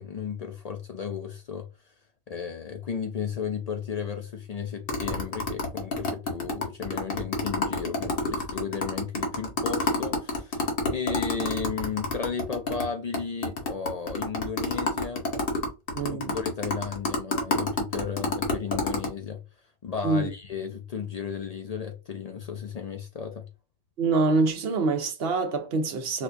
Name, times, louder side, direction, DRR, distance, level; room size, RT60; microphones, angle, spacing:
voice 1, 0.0-1.9 2.3-15.3 16.1-19.4 19.8-23.5, left 6 dB, 50° left, 0.5 m, -34 dB
sound 1, 4.9-12.8 13.1-13.2 13.4-19.1, left 3 dB, 65° left, 1.1 m, -28 dB
voice 2, 15.9-16.3 20.0-20.3 24.0-26.2, right 3 dB, 75° right, 0.9 m, -25 dB
4.3 x 2.3 x 2.5 m
omnidirectional pair, 1.0 m